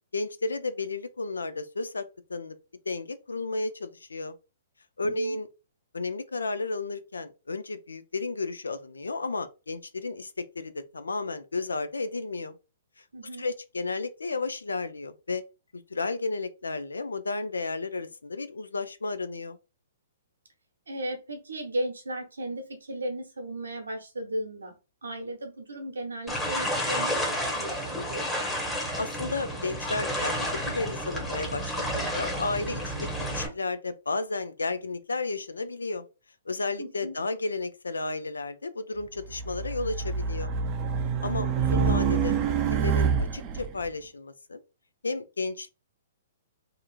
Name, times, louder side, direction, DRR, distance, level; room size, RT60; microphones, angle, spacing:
voice 1, 0.1-2.0 2.3-2.6 2.9-4.3 5.0-5.5 5.9-12.5 13.0-13.1 13.4-15.4 15.7-19.6 29.0-36.0 36.5-40.5 41.2-42.4 42.7-44.6 45.0-45.7, left 3 dB, 85° left, 0.4 m, -33 dB
voice 2, 5.0-5.4 13.1-13.5 20.9-24.7 25.0-28.3 36.8-37.2 41.2-41.5, right 1 dB, 80° right, 0.9 m, -36 dB
sound 1, 26.3-33.5, equal, 5° left, 0.9 m, -31 dB
Race car auto racing, 39.3-43.7, right 6 dB, 30° right, 0.4 m, -26 dB
2.8 x 2.4 x 2.3 m
hypercardioid pair, 120°, 0 cm